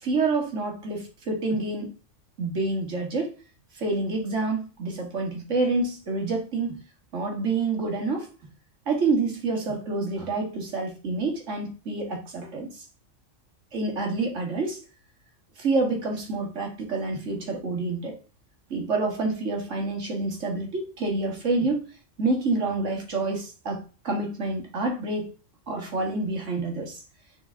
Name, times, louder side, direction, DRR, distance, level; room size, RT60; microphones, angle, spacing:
voice 1, 0.0-1.9 2.4-3.3 3.7-6.8 7.1-8.3 8.9-12.9 13.7-14.8 15.6-18.2 18.7-21.9 22.2-25.3 25.7-27.0, right 3 dB, 65° right, 2.2 m, -28 dB
7.4 x 6.0 x 3.5 m
omnidirectional pair, 1.4 m